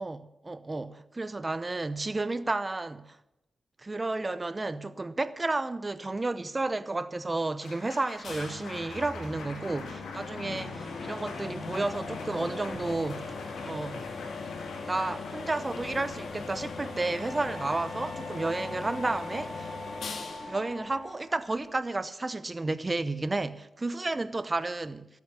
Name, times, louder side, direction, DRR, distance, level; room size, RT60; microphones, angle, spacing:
voice 1, 0.0-3.2 3.8-13.3 13.6-14.1 14.9-19.7 20.5-25.1, right 2 dB, 30° right, 0.7 m, -32 dB
Applause, 7.2-19.5, left 3 dB, 85° left, 2.9 m, -46 dB
sound 1, 8.2-21.7, left 4 dB, 70° left, 2.1 m, -40 dB
Wind instrument woodwind instrument, 17.1-21.2, left 1 dB, 80° right, 2.6 m, -44 dB
15.0 x 8.2 x 8.2 m
cardioid pair, 55°, 0 cm